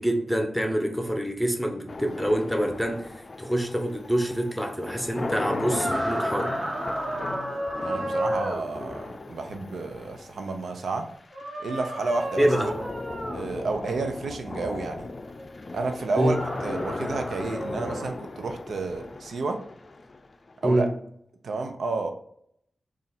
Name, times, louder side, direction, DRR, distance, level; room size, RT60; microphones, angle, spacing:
voice 1, 0.0-3.1 3.4-6.5 12.4-12.7 16.2-16.4 20.6-20.9, right 1 dB, ahead, 3 dB, 0.8 m, -26 dB
sound 1, 1.9-20.9, left 3 dB, 40° left, 0.4 m, -37 dB
sound 2, 5.7-8.6 11.3-13.4 16.0-18.1, right 1 dB, 45° right, 1.4 m, -32 dB
voice 2, 7.8-11.1 11.6-12.5 13.3-15.1 15.7-19.6 20.6-20.9 21.4-22.1, right 3 dB, 85° right, 5 dB, 0.5 m, -31 dB
4.1 x 2.4 x 4.0 m, 0.68 s
wide cardioid pair, 80°, 0 cm